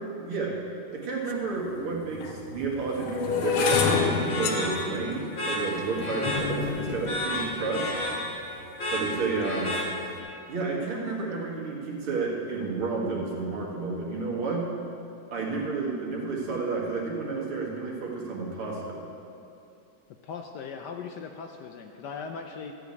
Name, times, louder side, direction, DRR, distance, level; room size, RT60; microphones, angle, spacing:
voice 1, 0.2-0.5 0.9-7.9 8.9-9.7 10.5-14.7 15.3-19.0, right 4 dB, 85° right, -3 dB, 2.7 m, -31 dB
sound 1, 1.3-1.4 2.1-8.3 8.9-9.3 9.6-10.0, left 5 dB, 90° left, 1.7 m, -29 dB
sound 2, 3.6-10.3, left 1 dB, 40° left, 2.3 m, -32 dB
sound 3, 6.0-7.6, right 4 dB, 60° right, 0.7 m, -45 dB
voice 2, 20.2-22.7, left 5 dB, 70° left, 4 dB, 1.0 m, -39 dB
13.0 x 5.1 x 8.4 m, 2.6 s
omnidirectional pair, 2.3 m